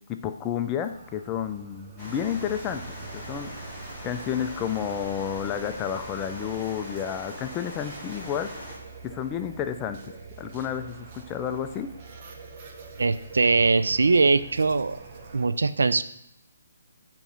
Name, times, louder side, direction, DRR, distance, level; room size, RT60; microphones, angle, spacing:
voice 1, 0.1-2.8 3.1-3.5 4.0-8.5 9.0-10.0 10.4-11.9, left 9 dB, 20° left, 7 dB, 0.4 m, -31 dB
sound 1, 0.8-15.5, right 4 dB, 35° right, 0.7 m, -45 dB
sound 2, 2.0-8.8, equal, ahead, 2.1 m, -41 dB
voice 2, 13.0-15.0 15.3-16.0, right 3 dB, 80° right, 13 dB, 0.4 m, -21 dB
6.9 x 3.0 x 5.4 m, 0.76 s
hypercardioid pair, 155°, 0 cm